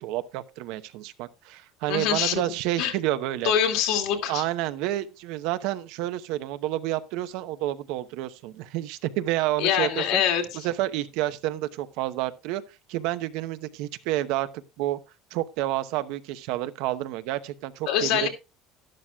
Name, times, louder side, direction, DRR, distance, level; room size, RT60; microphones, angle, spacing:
voice 1, 0.0-3.5 4.3-10.2 10.5-12.6 12.9-14.5 14.8-15.0 15.3-18.3, right 15 dB, 65° right, 0.8 m, -29 dB
voice 2, 1.9-2.4 2.8-2.9 3.4-4.4 9.6-10.5 17.9-18.3, left 9 dB, 65° left, 2.3 m, -24 dB
12.0 x 11.5 x 2.4 m
cardioid pair, 165°, 0 cm